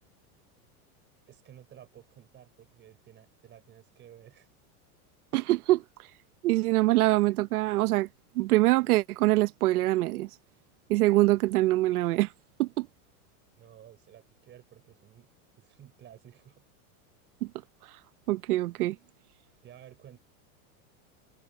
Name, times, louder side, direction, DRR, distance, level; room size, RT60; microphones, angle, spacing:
voice 1, 1.3-4.5 13.6-15.3 15.6-16.6 19.6-20.2, right 10 dB, 25° right, 4.7 m, -53 dB
voice 2, 5.3-5.8 6.4-8.1 8.3-10.3 10.9-12.3 12.6-12.9 18.3-19.0, right 18 dB, 85° right, 1.0 m, -24 dB
supercardioid pair, 155°, 43 cm